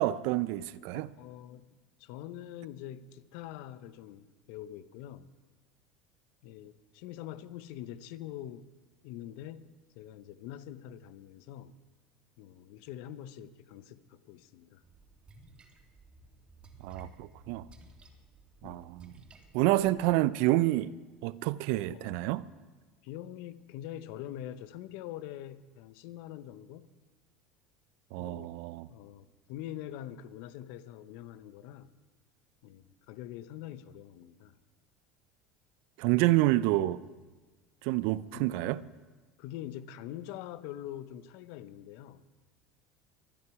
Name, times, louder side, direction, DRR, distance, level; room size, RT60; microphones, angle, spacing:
voice 1, 0.0-1.1 16.8-17.7 18.6-19.1 19.5-20.9 21.2-22.4 28.1-28.9 36.0-37.0 37.8-38.8, right 17 dB, 70° right, 0.5 m, -28 dB
voice 2, 0.9-1.6 2.0-5.3 6.4-8.7 9.0-9.7 9.9-11.8 12.4-14.8 18.6-18.9 21.9-22.2 23.0-26.9 28.2-28.5 28.9-31.9 32.6-34.6 38.3-38.8 39.4-42.3, left 12 dB, 70° left, 0.8 m, -44 dB
Splash splatter, 14.8-20.1, right 1 dB, 30° right, 2.5 m, -56 dB
23.5 x 9.7 x 4.8 m
hypercardioid pair, 85°, 4 cm